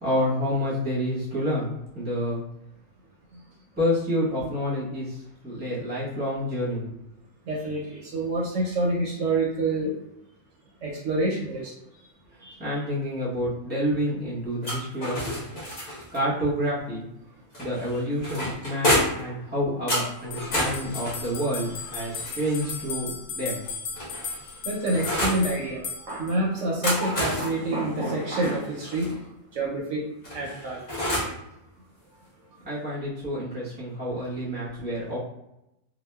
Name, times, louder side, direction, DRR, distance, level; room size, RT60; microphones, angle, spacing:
voice 1, 0.0-2.4 3.8-6.8 12.6-15.2 16.1-17.0 17.6-23.6 32.6-35.2, equal, 10° right, -7 dB, 0.8 m, -28 dB
voice 2, 7.5-9.9 10.8-11.7 12.4-12.6 21.9-22.1 24.6-30.0 30.3-30.8, right 2 dB, 65° right, -3 dB, 0.9 m, -27 dB
sound 1, 14.6-16.2 17.5-19.3 19.9-22.8 23.6-25.5 26.6-29.1 30.2-31.4, equal, 35° left, 0.9 m, -30 dB
sound 2, 20.3-26.4, left 5 dB, 65° left, 0.7 m, -36 dB
2.8 x 2.2 x 2.2 m, 0.86 s
omnidirectional pair, 1.5 m